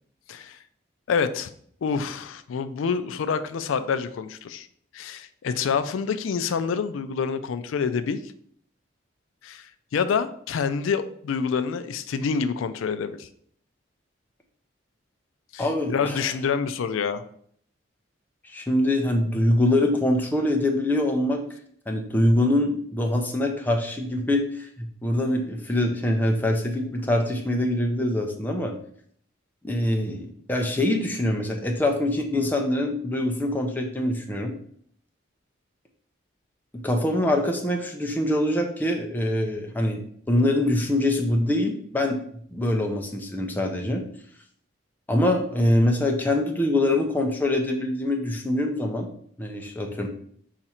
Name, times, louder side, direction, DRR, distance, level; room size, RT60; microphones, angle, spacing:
voice 1, 0.3-0.6 1.1-1.5 1.8-4.7 4.9-8.2 9.4-13.3 15.5-17.2, left 6 dB, 85° left, 11 dB, 0.3 m, -27 dB
voice 2, 15.6-16.3 18.4-21.4 21.9-28.7 29.6-34.5 36.8-40.0 40.3-42.2 42.5-44.0 45.1-49.1 49.4-50.1, left 1 dB, 10° left, 2 dB, 0.4 m, -24 dB
4.1 x 2.4 x 4.2 m, 0.63 s
head